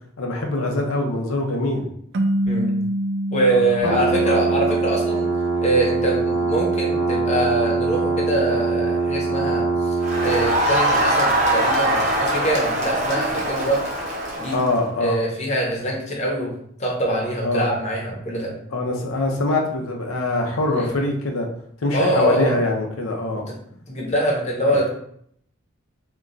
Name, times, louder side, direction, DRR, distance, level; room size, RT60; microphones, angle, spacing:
voice 1, 0.2-1.9 3.5-4.0 14.5-15.2 17.4-17.7 18.7-21.5 21.8-23.4, left 2 dB, 90° left, 1 dB, 0.7 m, -23 dB
sound 1, 2.1-5.3, right 1 dB, 55° right, 0.3 m, -26 dB
voice 2, 3.3-5.3 5.6-10.0 10.2-13.8 14.4-14.5 15.0-16.5 16.8-18.5 20.7-20.9 21.9-22.6 23.9-24.9, right 1 dB, 35° left, -2 dB, 0.9 m, -23 dB
sound 2, 3.8-10.6, right 4 dB, 75° right, 1.0 m, -22 dB
Crowd, 10.0-14.8, right 1 dB, 35° right, 0.8 m, -22 dB
2.9 x 2.4 x 3.8 m, 0.68 s
head